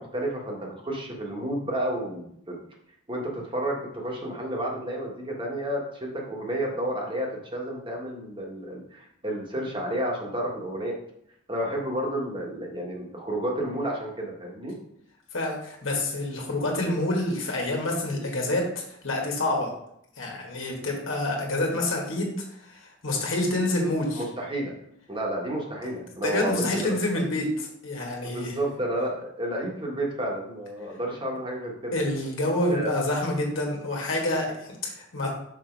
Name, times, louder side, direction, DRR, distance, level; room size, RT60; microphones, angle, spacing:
voice 1, 0.0-2.6 3.1-11.0 11.5-14.8 24.1-24.7 25.1-27.2 28.2-32.0 32.7-32.9, right 1 dB, 25° right, -1 dB, 1.5 m, -31 dB
voice 2, 15.3-19.7 20.2-22.3 22.6-24.2 26.2-28.6 31.9-35.3, left 1 dB, 80° left, -1 dB, 1.5 m, -27 dB
6.1 x 4.3 x 4.6 m, 0.72 s
head